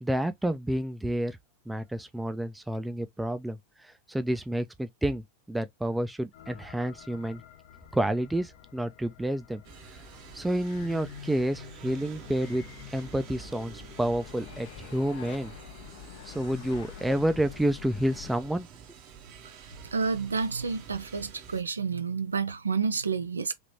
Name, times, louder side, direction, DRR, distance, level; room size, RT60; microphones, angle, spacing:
voice 1, 0.0-1.4 1.7-3.6 4.1-7.4 7.9-9.6 10.3-12.6 12.9-15.5 16.3-18.7, right 1 dB, 5° right, 0.4 m, -29 dB
sound 1, 6.3-18.3, left 10 dB, 50° left, 0.6 m, -47 dB
sound 2, 9.6-21.6, right 7 dB, 40° right, 0.9 m, -49 dB
voice 2, 19.8-23.5, right 5 dB, 75° right, 0.3 m, -30 dB
3.3 x 2.9 x 2.6 m
figure-of-eight pair, 90°, 0 cm